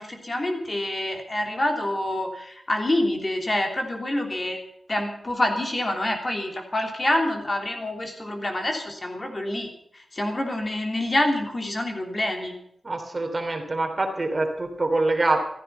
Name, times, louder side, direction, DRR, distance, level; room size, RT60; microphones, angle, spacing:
voice 1, 0.0-4.6 4.9-12.5, left 1 dB, 30° left, 3 dB, 3.1 m, -27 dB
voice 2, 12.8-15.4, right 2 dB, 30° right, 4 dB, 3.0 m, -25 dB
15.5 x 14.0 x 5.7 m, 0.71 s
wide cardioid pair, 130°, 0 cm